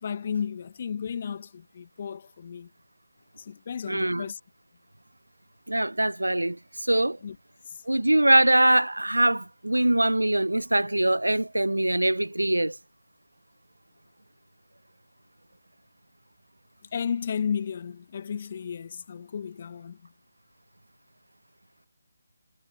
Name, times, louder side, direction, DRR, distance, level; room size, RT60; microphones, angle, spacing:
voice 1, 0.0-2.7 3.4-4.4 7.2-7.4 16.9-20.0, left 7 dB, 40° left, 1.5 m, -33 dB
voice 2, 3.9-4.2 5.7-7.2 7.9-12.8, right 1 dB, 80° right, 1.0 m, -23 dB
figure-of-eight pair, 150°, 0 cm